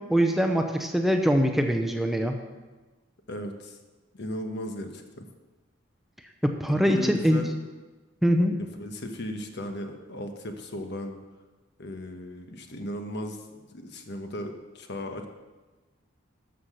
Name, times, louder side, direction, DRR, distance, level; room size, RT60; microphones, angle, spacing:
voice 1, 0.0-2.4 6.4-7.4 8.2-8.6, equal, ahead, 4 dB, 0.7 m, -23 dB
voice 2, 3.3-3.8 4.1-5.2 6.7-7.5 8.6-11.2 11.8-15.3, left 1 dB, 60° left, 5 dB, 1.2 m, -36 dB
13.0 x 5.8 x 6.3 m, 1.2 s
head